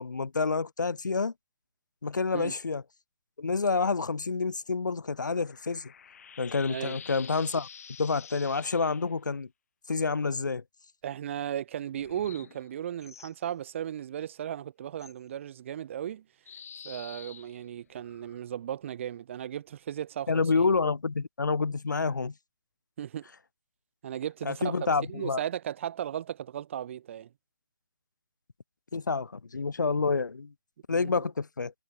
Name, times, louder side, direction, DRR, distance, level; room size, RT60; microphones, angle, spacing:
voice 1, 0.0-1.3 2.0-2.8 3.4-5.9 6.4-7.7 8.0-9.5 9.9-10.6 20.3-22.3 24.4-25.4 28.9-30.5 30.9-31.7, left 4 dB, 65° left, 7.9 m, -28 dB
sound 1, 4.7-9.2 11.9-13.4 15.0-15.1 16.4-18.4, left 7 dB, 45° left, 6.9 m, -49 dB
voice 2, 11.0-16.2 16.8-20.7 23.0-23.2 24.0-27.3 30.9-31.3, right 10 dB, 35° right, 2.0 m, -36 dB
figure-of-eight pair, 135°, 11 cm